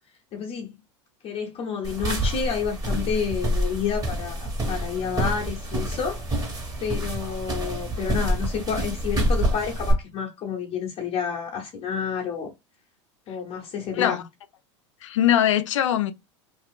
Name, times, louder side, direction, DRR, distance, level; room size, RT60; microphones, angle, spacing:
voice 1, 0.3-0.7 1.2-6.2 6.8-12.5 13.3-14.2, left 7 dB, 40° left, 0.9 m, -29 dB
sound 1, 1.8-9.9, equal, 25° right, 1.4 m, -27 dB
voice 2, 15.0-16.1, left 11 dB, 85° left, 0.5 m, -21 dB
2.6 x 2.3 x 3.6 m
hypercardioid pair, 95°, 16 cm